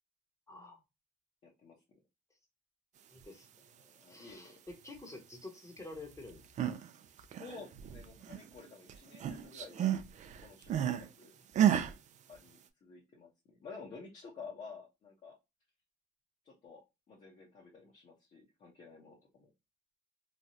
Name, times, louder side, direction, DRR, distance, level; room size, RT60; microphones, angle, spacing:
voice 1, 0.5-0.8 3.1-6.8 9.8-9.9, left 2 dB, 20° left, 0.9 m, -50 dB
voice 2, 1.4-2.0 4.0-4.6 7.2-10.0 10.4-11.3 11.6-11.7 12.3-15.3 16.4-16.8 17.1-19.5, left 5 dB, 45° left, 0.9 m, -52 dB
sound 1, 6.3-6.9 7.2-8.6 8.9-11.1 11.5-11.9, right 10 dB, 45° right, 0.4 m, -31 dB
3.1 x 2.3 x 2.6 m
cardioid pair, 110°, 17 cm